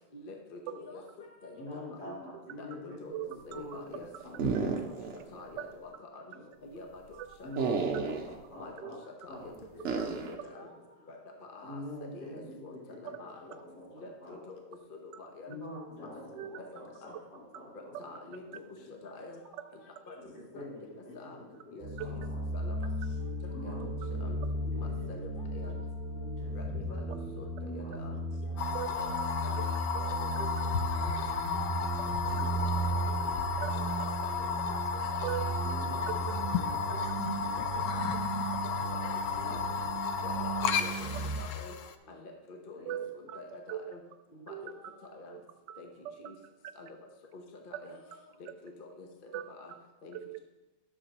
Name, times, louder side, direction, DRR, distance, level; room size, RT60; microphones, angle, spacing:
voice 1, 0.1-2.2 2.6-4.1 4.6-5.0 5.3-6.2 6.7-7.0 7.4-7.5 7.8-7.9 8.6-8.7 9.2-9.5 9.9-10.0 10.3-10.7 11.1-11.2 11.5-11.8 12.1-12.7 13.0-13.6 13.9-14.6 14.9-15.6 16.5-17.1 18.0-18.4 19.0-19.4 19.7-20.1 20.5-20.7 21.1-21.4 21.7-22.2 22.5-22.9 23.6-23.7 24.2-24.4 24.6-25.8 26.1-28.2 28.7-29.7 29.9-31.1 31.5-32.3 32.9-33.1 34.0-34.1 34.4-35.6 35.9-36.0 36.7-37.0 37.5-39.0 39.4-39.6 40.2-41.7 42.1-43.0 43.3-44.0 44.3-44.7 45.1-45.4 45.8-45.9 46.2-46.3 46.8-46.9 47.3-48.0 48.4-49.1 49.5-49.7 50.0-50.2, left 3 dB, 45° left, 2 dB, 0.7 m, -47 dB
voice 2, 1.5-5.4 6.3-6.4 7.4-9.0 9.3-10.7 11.6-14.4 15.5-18.1 18.5-18.9 20.2-22.4 23.5-25.4 26.2-26.7 27.6-28.0 28.4-28.6 29.5-29.6 31.2-31.3 32.3-33.9 34.5-34.6 35.6-36.2 36.5-37.1 37.4-37.8 39.4-39.7 40.1-40.2 42.7-43.1, left 1 dB, 65° left, -7 dB, 3.2 m, -47 dB
voice 3, 3.1-3.8 4.1-4.2 5.0-5.1 5.5-5.6 7.1-7.3 8.8-9.0 16.3-16.6 17.1-17.2 17.9-18.1 22.0-22.1 28.7-28.9 29.2-29.3 29.5-29.6 30.4-30.5 32.0-32.1 33.6-33.8 35.2-35.5 36.1-36.6 36.9-37.0 37.7-37.8 42.9-44.0 44.5-44.9 45.3-45.4 45.7-46.5 47.9-48.0 48.5-48.6 49.3-49.8 50.1-50.4, right 10 dB, 80° right, 10 dB, 1.2 m, -41 dB
sound 1, 4.4-5.2 5.5-5.6 7.6-8.4 9.8-10.4, right 5 dB, 55° right, 0.8 m, -31 dB
sound 2, 21.8-41.4, right 2 dB, 40° right, 1.1 m, -36 dB
sound 3, 28.6-41.9, left 7 dB, 90° left, 0.6 m, -33 dB
11.0 x 6.7 x 2.9 m, 1.0 s
omnidirectional pair, 1.9 m